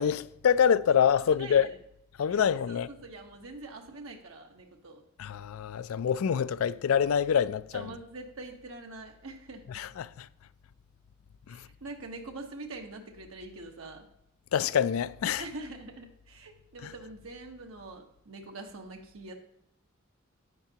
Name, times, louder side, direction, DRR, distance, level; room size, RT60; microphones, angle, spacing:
voice 1, 0.0-1.7 2.2-2.9 5.2-7.9 9.7-10.3 11.5-11.6 14.5-15.4, left 8 dB, 90° left, 0.4 m, -26 dB
voice 2, 1.2-1.8 2.3-5.0 7.7-9.8 11.5-14.1 15.4-19.3, right 2 dB, 85° right, 1.1 m, -44 dB
10.5 x 9.0 x 2.8 m
head